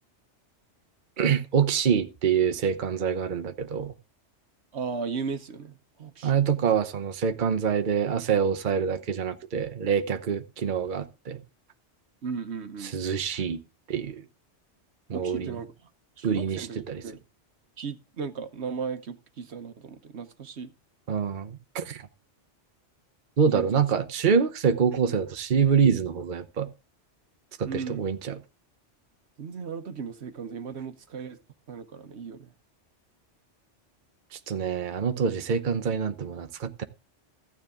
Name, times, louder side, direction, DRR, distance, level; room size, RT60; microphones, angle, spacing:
voice 1, 1.2-3.9 6.2-11.4 12.8-13.6 13.9-14.2 15.1-15.6 16.2-17.0 21.1-22.0 23.4-26.7 27.6-28.4 34.3-36.9, right 7 dB, 45° right, 0.9 m, -26 dB
voice 2, 4.7-6.5 12.2-12.9 15.1-15.7 16.2-17.2 17.8-20.7 23.5-23.8 27.6-28.0 29.4-31.4 31.7-32.5, right 5 dB, 70° right, 1.2 m, -36 dB
14.5 x 9.3 x 3.6 m
omnidirectional pair, 1.2 m